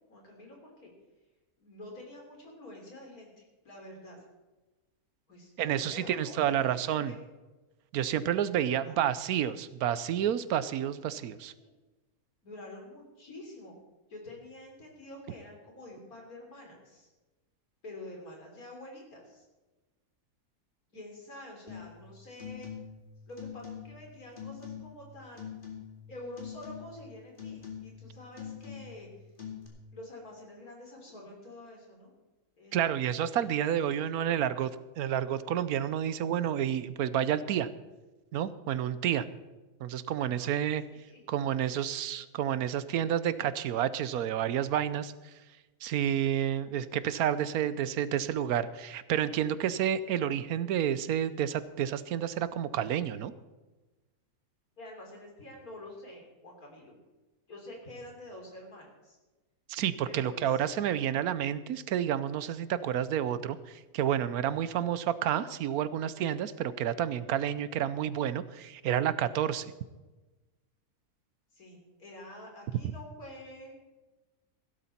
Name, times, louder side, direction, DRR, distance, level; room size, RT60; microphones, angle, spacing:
voice 1, 0.1-0.9 1.6-4.2 5.3-7.3 8.8-9.1 11.1-11.7 12.4-13.7 14.1-17.1 17.8-19.4 20.9-22.7 23.3-25.6 26.1-29.1 29.9-32.1 32.6-33.0 33.3-34.0 40.4-40.5 41.1-41.2 54.8-56.9 57.5-59.2 60.0-60.6 71.5-73.8, left 1 dB, 70° left, 0 dB, 3.8 m, -48 dB
voice 2, 5.6-7.1 7.9-11.5 32.7-37.7 38.3-39.3 39.8-40.8 41.3-45.1 45.8-53.3 59.7-69.7, right 10 dB, 80° right, 15 dB, 1.1 m, -30 dB
sound 1, 21.7-22.0 22.3-23.0 23.4-24.1 24.4-25.0 25.4-26.1 26.4-27.0 27.4-28.1 28.4-29.0 29.4-29.7, left 8 dB, 35° left, 2.6 m, -43 dB
16.0 x 12.5 x 4.3 m, 1.2 s
omnidirectional pair, 1.6 m